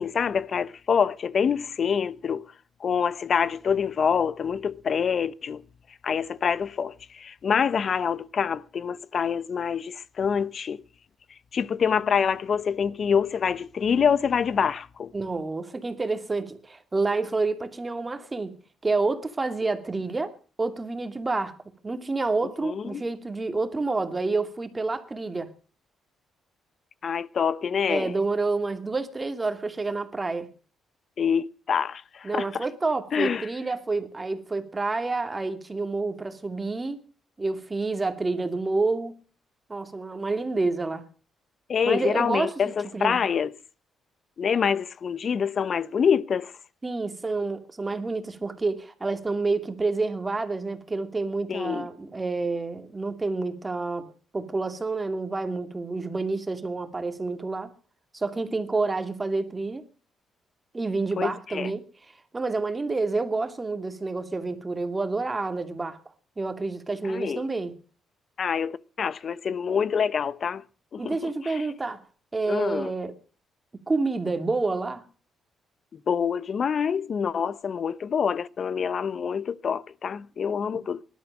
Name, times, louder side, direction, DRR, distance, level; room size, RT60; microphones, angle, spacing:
voice 1, 0.0-2.5 2.8-5.6 6.0-10.8 11.5-15.1 22.6-23.0 27.0-28.1 31.2-32.6 33.1-33.5 41.7-43.5 44.4-46.5 51.5-51.9 61.2-61.7 67.0-67.4 68.4-70.6 70.9-71.2 71.4-71.6 72.5-72.9 75.9-81.0, left 7 dB, 50° left, 0.9 m, -26 dB
voice 2, 15.1-18.6 18.8-21.5 21.8-25.5 27.9-30.5 32.2-37.0 37.4-39.2 39.7-41.0 41.8-43.2 46.8-57.7 58.1-59.8 60.7-61.9 62.3-66.0 66.4-67.7 71.0-72.0 72.3-73.2 73.9-75.0, right 3 dB, 25° right, 2.4 m, -28 dB
18.5 x 12.5 x 6.3 m
cardioid pair, 90°, 0 cm